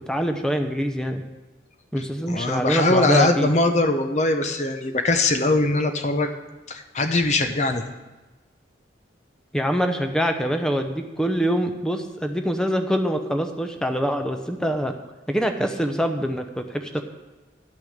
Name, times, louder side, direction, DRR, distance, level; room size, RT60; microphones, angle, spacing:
voice 1, 0.1-1.2 1.9-3.5 9.5-14.9 15.3-17.0, equal, 5° left, 6 dB, 0.7 m, -24 dB
voice 2, 2.3-6.3 6.7-7.8, left 2 dB, 40° left, 6 dB, 0.7 m, -21 dB
10.5 x 6.3 x 6.5 m, 1.2 s
head